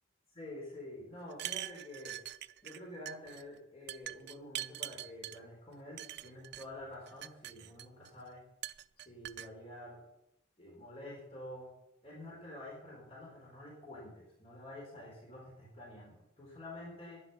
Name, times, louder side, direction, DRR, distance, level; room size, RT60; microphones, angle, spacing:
voice 1, 0.3-2.2 2.6-8.4 9.0-10.0 10.6-11.7 12.0-17.2, left 1 dB, 30° left, -3 dB, 4.1 m, -48 dB
sound 1, 1.3-2.8 3.1-3.4 3.9-5.4 6.0-6.7 7.1-8.1 8.6-9.5, right 13 dB, 55° right, 0.4 m, -43 dB
11.0 x 10.5 x 5.6 m, 0.81 s
head